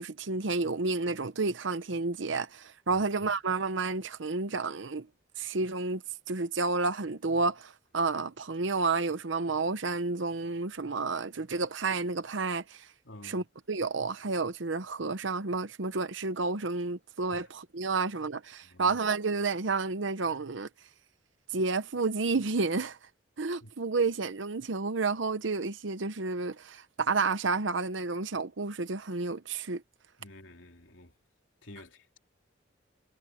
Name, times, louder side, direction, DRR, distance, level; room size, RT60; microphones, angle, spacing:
voice 1, 0.0-5.1 5.4-6.0 6.3-12.9 13.2-20.7 21.5-23.0 23.4-29.8, right 3 dB, 70° right, 0.9 m, -30 dB
voice 2, 13.0-13.4 17.3-17.4 18.6-19.0 23.6-23.7 30.2-31.1 31.6-32.2, left 1 dB, 75° left, 3.3 m, -50 dB
head